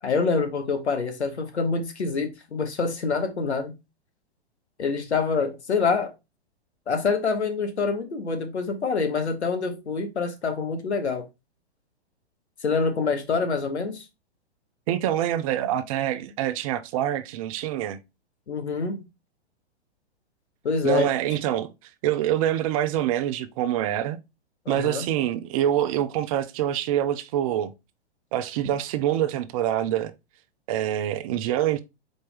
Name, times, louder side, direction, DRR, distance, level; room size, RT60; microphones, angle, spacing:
voice 1, 0.0-3.7 4.8-6.1 6.9-11.3 12.6-14.0 18.5-19.0 20.6-21.4 24.6-25.1, left 4 dB, 85° left, 1.1 m, -26 dB
voice 2, 14.9-18.0 20.8-21.7 22.0-24.2 24.7-27.7 28.3-30.1 30.7-31.8, right 11 dB, 35° right, 0.4 m, -25 dB
4.3 x 3.2 x 3.4 m
hypercardioid pair, 120°, 33 cm